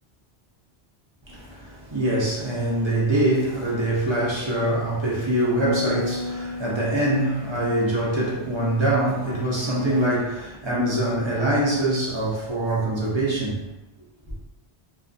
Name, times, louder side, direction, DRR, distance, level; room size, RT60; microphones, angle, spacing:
voice 1, 1.3-13.6, right 1 dB, 35° right, 0.5 m, -24 dB
sound 1, 5.6-9.0, left 3 dB, 5° left, 1.0 m, -34 dB
2.4 x 2.3 x 2.5 m
omnidirectional pair, 1.1 m